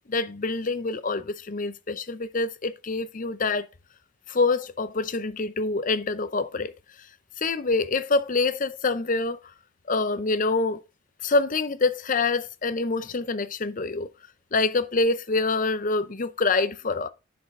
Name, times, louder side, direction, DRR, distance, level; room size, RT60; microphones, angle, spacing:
voice 1, 0.1-3.7 4.3-6.7 7.4-9.4 9.9-10.8 11.2-14.1 14.5-17.1, left 3 dB, 40° left, 0.6 m, -26 dB
10.5 x 5.3 x 3.6 m
head